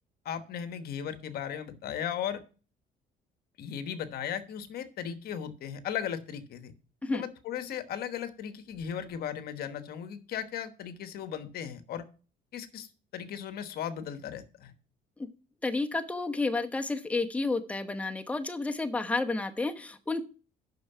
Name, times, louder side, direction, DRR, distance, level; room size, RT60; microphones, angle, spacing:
voice 1, 0.2-2.4 3.6-6.7 7.1-12.1 12.5-14.7, left 9 dB, 65° left, 10 dB, 1.2 m, -37 dB
voice 2, 15.6-20.2, left 3 dB, 10° left, 5 dB, 0.9 m, -31 dB
9.3 x 6.2 x 5.6 m, 0.37 s
cardioid pair, 110°, 17 cm